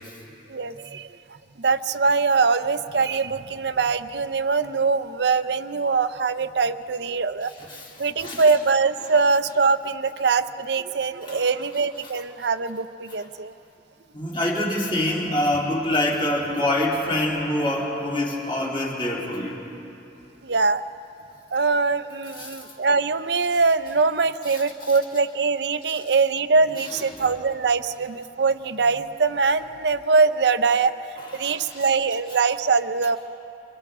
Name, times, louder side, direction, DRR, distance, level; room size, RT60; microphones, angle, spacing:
voice 1, 0.5-1.1 1.6-7.5 8.0-13.5 20.4-20.8 21.5-30.9 31.3-33.2, right 4 dB, 65° right, 12 dB, 0.6 m, -22 dB
voice 2, 14.1-19.6 22.4-22.5 27.2-27.3 31.4-31.8, left 1 dB, 30° left, -4 dB, 3.4 m, -25 dB
28.5 x 26.0 x 3.7 m, 2.9 s
head